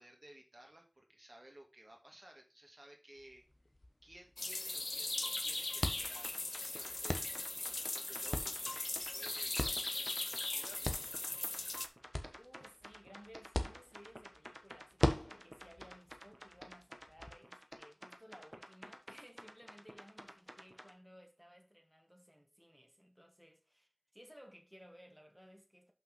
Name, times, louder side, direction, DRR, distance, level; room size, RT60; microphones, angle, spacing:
voice 1, 0.0-3.5 4.0-8.9 9.1-11.1, right 1 dB, 55° right, 2.0 m, -58 dB
sound 1, 3.2-17.3, left 1 dB, 50° left, 1.2 m, -43 dB
sound 2, 4.4-11.9, left 2 dB, 85° left, 0.6 m, -39 dB
sound 3, 6.0-20.9, equal, 20° right, 1.3 m, -53 dB
voice 2, 12.4-25.9, equal, ahead, 1.8 m, -59 dB
5.8 x 5.7 x 5.5 m
wide cardioid pair, 45°, 0 cm